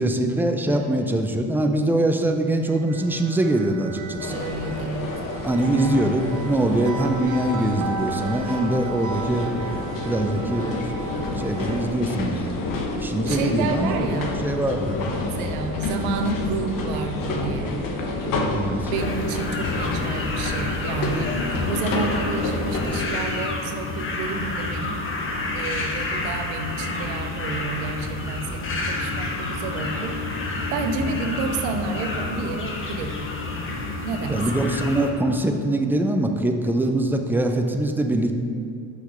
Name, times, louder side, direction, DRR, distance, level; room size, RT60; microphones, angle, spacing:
voice 1, 0.0-4.4 5.4-12.7 13.0-15.0 18.5-18.9 34.3-38.3, right 1 dB, 5° right, 4 dB, 0.5 m, -23 dB
voice 2, 0.7-1.1 4.3-5.5 13.3-14.4 15.4-17.8 18.2-18.4 18.8-25.0 25.5-30.5 30.7-33.2 34.0-34.5, right 4 dB, 85° right, 5 dB, 0.8 m, -30 dB
sound 1, 2.6-12.0, right 4 dB, 45° right, 0.8 m, -36 dB
sound 2, 4.2-23.1, left 2 dB, 50° left, 1.2 m, -29 dB
sound 3, 18.9-35.1, left 2 dB, 30° left, 1.1 m, -29 dB
6.0 x 5.9 x 5.0 m, 2.5 s
supercardioid pair, 100°, 43 cm